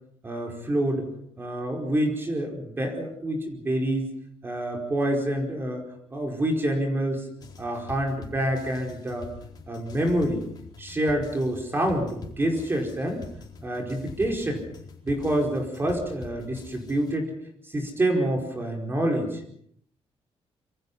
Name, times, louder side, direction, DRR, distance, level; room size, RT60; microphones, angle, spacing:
voice 1, 0.2-1.1 1.4-4.1 4.4-5.8 6.1-7.2 7.6-9.3 9.7-10.4 10.8-13.2 13.6-14.6 15.0-17.3 17.7-19.4, right 1 dB, 20° right, 2 dB, 4.8 m, -27 dB
sound 1, 7.4-17.2, left 4 dB, 40° left, 4.5 m, -44 dB
26.5 x 25.0 x 5.6 m, 0.68 s
cardioid pair, 145°, 10 cm